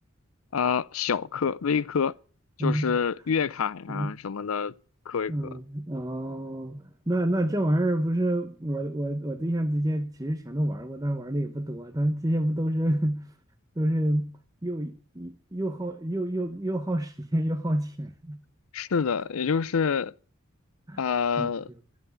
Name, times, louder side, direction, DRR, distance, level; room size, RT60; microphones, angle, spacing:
voice 1, 0.5-2.2 2.6-4.7 5.1-5.3 18.7-20.1 21.0-21.7, left 6 dB, 90° left, 0.5 m, -27 dB
voice 2, 2.6-3.0 3.9-4.1 5.3-13.3 13.8-14.3 14.6-18.4 20.9-21.0 21.4-21.5, right 1 dB, 15° right, 0.9 m, -28 dB
13.0 x 8.3 x 8.3 m
head